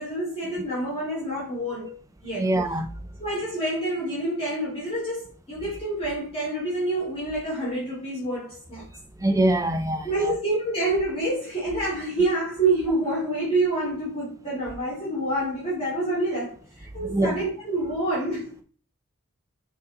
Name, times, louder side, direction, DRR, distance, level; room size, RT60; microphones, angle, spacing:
voice 1, 0.0-2.0 2.2-2.5 3.2-8.9 10.0-18.6, right 2 dB, 25° left, 2.7 m, -27 dB
voice 2, 2.4-2.9 9.2-10.3 17.1-17.4, right 1 dB, 15° right, 0.7 m, -23 dB
6.2 x 4.1 x 4.0 m
head